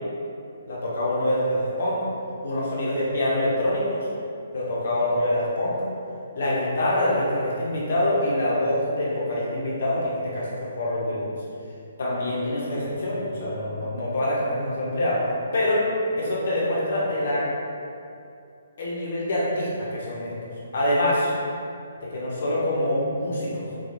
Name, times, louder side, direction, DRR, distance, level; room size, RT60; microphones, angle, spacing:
voice 1, 0.7-2.0 2.4-4.1 4.5-5.8 6.3-11.3 12.0-15.3 15.5-15.9 16.2-17.5 18.8-20.3 20.7-21.3 22.0-23.7, left 1 dB, 55° left, -6 dB, 0.8 m, -25 dB
2.9 x 2.3 x 2.5 m, 2.5 s
figure-of-eight pair, 135°, 0 cm